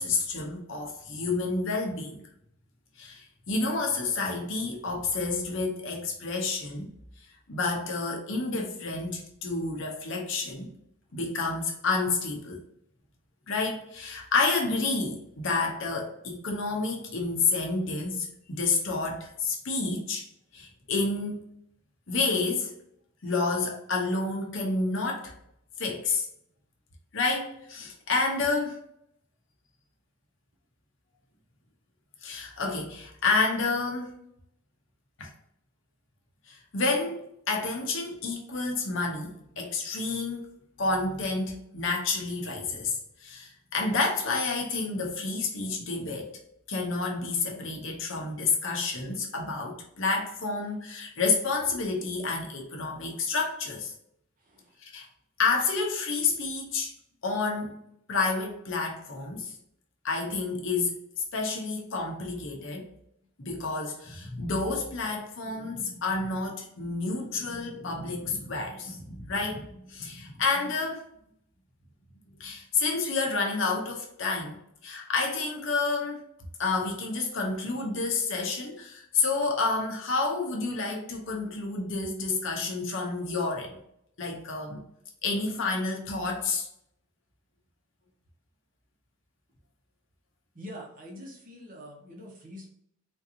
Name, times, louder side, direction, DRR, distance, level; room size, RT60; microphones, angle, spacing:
voice 1, 0.0-2.2 3.0-6.9 7.5-10.7 11.1-12.6 13.5-20.2 20.5-21.4 22.1-22.7 23.2-25.3 25.8-26.3 27.1-28.8 32.2-34.1 35.2-35.3 36.5-37.2 37.5-40.4 40.8-46.3 46.7-53.9 54.8-55.1 55.4-56.9 57.2-57.7 58.1-59.5 60.0-61.0 61.3-62.9 63.4-71.0 72.4-74.6 74.8-76.2 76.6-83.8 84.2-84.8 85.2-86.7, left 3 dB, 55° left, 0 dB, 0.7 m, -29 dB
voice 2, 54.4-54.7 90.5-92.7, equal, 40° right, -1 dB, 0.9 m, -45 dB
3.8 x 2.6 x 2.7 m, 0.73 s
head